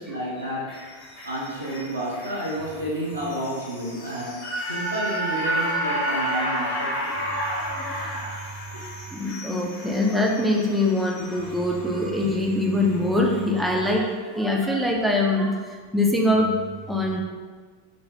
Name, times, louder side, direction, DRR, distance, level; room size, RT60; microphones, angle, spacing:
voice 1, 0.0-7.2 8.7-8.8, right 1 dB, 80° right, -7 dB, 0.6 m, -31 dB
sound 1, 0.7-13.0 13.4-13.5, right 1 dB, 40° left, 0.8 m, -31 dB
voice 2, 7.3-8.3 9.1-16.6 16.9-17.2, left 1 dB, 5° right, 0 dB, 0.4 m, -24 dB
2.5 x 2.4 x 3.1 m, 1.5 s
figure-of-eight pair, 90°, 0 cm